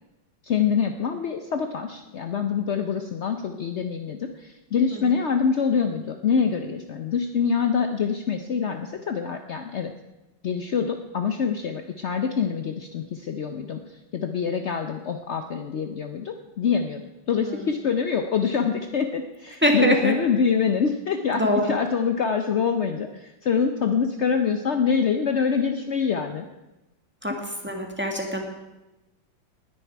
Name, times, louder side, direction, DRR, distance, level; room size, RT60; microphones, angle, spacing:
voice 1, 0.4-9.9 10.4-17.0 17.3-26.5, left 6 dB, 75° left, 6 dB, 0.6 m, -25 dB
voice 2, 19.6-20.1 21.3-21.8 27.2-27.3 27.6-28.4, equal, 5° right, 2 dB, 1.6 m, -23 dB
19.5 x 10.0 x 4.6 m, 1.0 s
omnidirectional pair, 2.2 m